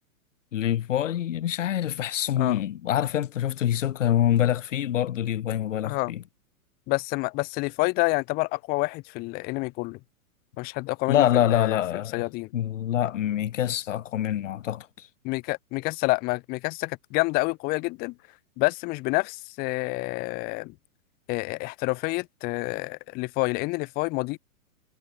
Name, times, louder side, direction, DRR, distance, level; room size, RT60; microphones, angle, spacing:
voice 1, 0.5-6.2 11.1-12.2 12.5-15.1, left 11 dB, 60° left, 7.0 m, -25 dB
voice 2, 6.9-10.0 10.6-11.8 12.1-12.5 15.2-18.1 18.6-20.7 21.3-24.4, left 25 dB, 20° left, 1.8 m, -28 dB
hypercardioid pair, 170°, 43 cm